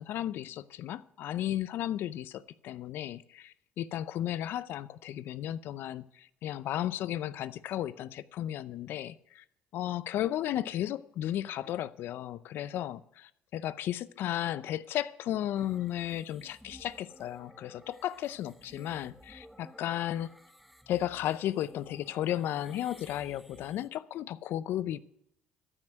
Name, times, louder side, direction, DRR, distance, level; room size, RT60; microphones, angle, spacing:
voice 1, 0.0-9.4 9.7-20.3 20.9-25.0, left 12 dB, 70° left, 0.6 m, -34 dB
sound 1, 15.5-23.9, equal, ahead, 0.8 m, -56 dB
13.0 x 6.3 x 9.1 m
supercardioid pair, 70°, 4 cm